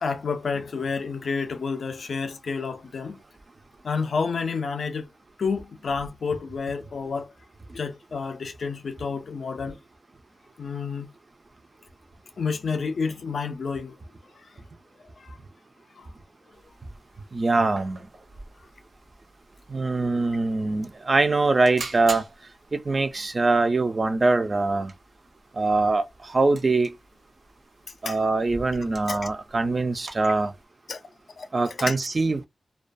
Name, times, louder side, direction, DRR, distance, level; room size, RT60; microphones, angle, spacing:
voice 1, 0.0-3.2 3.8-5.1 5.4-7.3 7.7-9.8 10.6-11.1 12.4-13.9 15.2-15.4 16.0-16.1 28.1-28.2 29.1-29.2 30.2-30.3 30.9-31.0 31.4-31.5 31.8-31.9, left 5 dB, 75° left, 0.4 m, -29 dB
sound 1, 16.5-30.6, right 3 dB, 70° right, 0.7 m, -46 dB
voice 2, 17.3-18.0 19.7-22.2 22.7-24.9 25.6-26.0 26.3-26.9 28.0-30.5 31.5-32.4, right 3 dB, 35° right, 0.4 m, -23 dB
2.2 x 2.2 x 2.5 m
wide cardioid pair, 130°, 0 cm